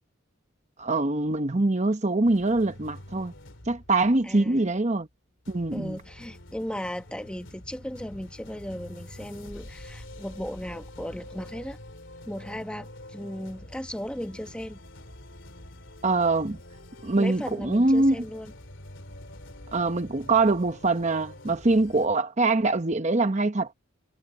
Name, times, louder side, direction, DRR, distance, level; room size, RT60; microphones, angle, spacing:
voice 1, 0.8-3.3 3.7-5.1 5.5-6.0 16.0-16.6 17.0-18.2 19.7-23.7, right 2 dB, 35° right, 0.9 m, -23 dB
sound 1, 2.2-5.0 5.4-22.1, left 1 dB, 65° left, 3.2 m, -46 dB
voice 2, 4.2-4.6 5.7-11.8 12.2-14.8 17.2-18.5, equal, 5° left, 1.0 m, -36 dB
head